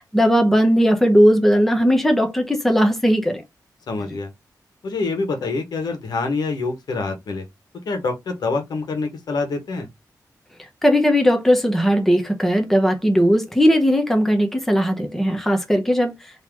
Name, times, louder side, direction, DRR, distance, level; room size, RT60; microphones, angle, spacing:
voice 1, 0.0-3.4 10.8-16.1, equal, 5° left, 0.9 m, -18 dB
voice 2, 3.9-4.3 4.8-7.4 7.8-9.9, left 3 dB, 75° left, 1.4 m, -26 dB
3.8 x 3.0 x 4.5 m
wide cardioid pair, 160°, 7 cm